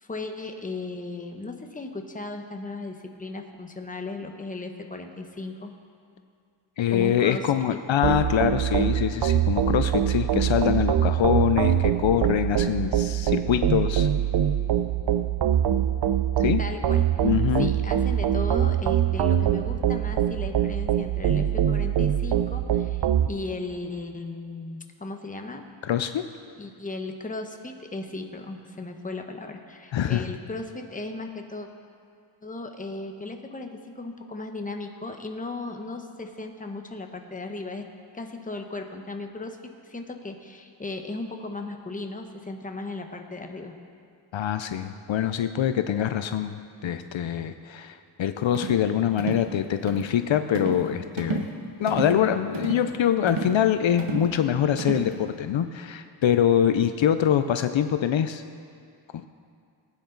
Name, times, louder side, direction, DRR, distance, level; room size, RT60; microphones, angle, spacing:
voice 1, 0.0-5.7 6.9-7.5 7.7-7.8 16.6-17.0 17.6-25.7 26.6-31.7 32.4-37.9 38.1-39.6 39.8-43.8, left 2 dB, 15° left, 4 dB, 0.9 m, -36 dB
voice 2, 6.8-14.1 16.4-16.6 17.2-17.7 25.8-26.2 29.9-30.2 44.3-51.5 51.8-58.4 59.1-59.2, left 10 dB, 70° left, 9 dB, 0.6 m, -24 dB
sound 1, 8.0-23.3, right 10 dB, 60° right, 0.6 m, -23 dB
sound 2, 48.5-48.8 49.2-49.5 49.9-50.1 50.5-50.9 51.2-51.5 51.9-52.2 52.5-52.9 53.3-53.6 54.0-54.3 54.8-55.1, right 4 dB, 75° right, 1.5 m, -31 dB
20.0 x 9.3 x 3.9 m, 2.3 s
wide cardioid pair, 115°, 49 cm